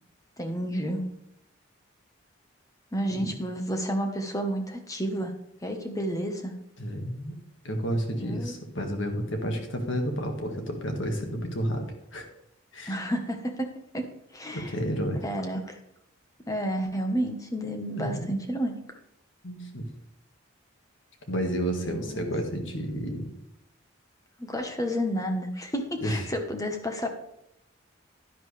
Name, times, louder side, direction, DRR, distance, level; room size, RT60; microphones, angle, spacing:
voice 1, 0.4-1.0 2.9-5.3 5.6-6.5 8.2-8.5 12.9-13.7 13.9-14.1 14.3-14.7 15.2-15.8 16.5-19.0 21.8-22.3 24.4-27.1, equal, 15° left, 4 dB, 1.2 m, -31 dB
voice 2, 6.8-7.4 7.6-11.9 12.1-12.3 12.7-13.0 14.5-15.2 17.9-18.3 19.4-19.9 21.3-23.3 26.0-26.3, equal, 65° left, 4 dB, 1.8 m, -31 dB
11.0 x 10.5 x 3.4 m, 0.81 s
head